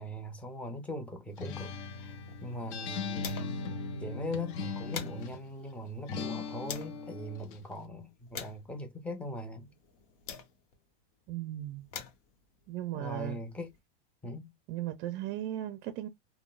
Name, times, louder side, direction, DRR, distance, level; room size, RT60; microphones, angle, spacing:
voice 1, 0.0-3.6 4.0-9.7 12.9-13.7 14.2-14.5, left 1 dB, 5° left, 0.6 m, -40 dB
Acoustic guitar, 1.4-5.5 6.1-7.7, left 4 dB, 45° left, 0.7 m, -39 dB
sound 1, 1.9-3.7 4.1-4.2 4.5-7.0 7.7-10.9 11.6-13.8, left 7 dB, 65° left, 1.2 m, -47 dB
voice 2, 11.3-11.9 12.7-13.4 14.7-16.1, right 13 dB, 40° right, 0.5 m, -36 dB
3.7 x 2.1 x 2.4 m
supercardioid pair, 145°, 30 cm